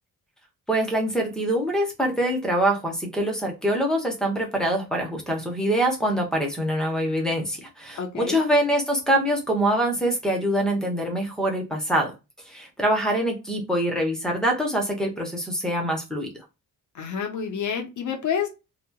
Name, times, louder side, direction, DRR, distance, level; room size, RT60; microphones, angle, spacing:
voice 1, 0.7-12.1 12.5-16.3, right 1 dB, ahead, 0.9 m, -24 dB
voice 2, 8.0-8.4 16.9-18.5, left 7 dB, 55° left, 0.8 m, -28 dB
2.9 x 2.4 x 2.2 m
wide cardioid pair, 135°, 36 cm